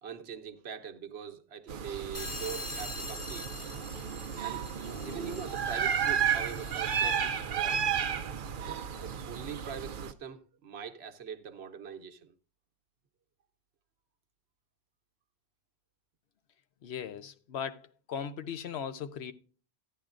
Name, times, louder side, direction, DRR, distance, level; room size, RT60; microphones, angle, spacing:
voice 1, 0.0-3.5 4.4-4.6 5.0-7.8 8.6-12.3, right 7 dB, 80° right, 1.1 m, -43 dB
sound 1, 1.7-10.1, right 8 dB, 60° right, 0.7 m, -33 dB
sound 2, 2.1-7.4, left 2 dB, 20° left, 1.0 m, -44 dB
voice 2, 16.8-19.3, left 7 dB, 80° left, 1.0 m, -38 dB
14.0 x 10.0 x 2.5 m
omnidirectional pair, 1.1 m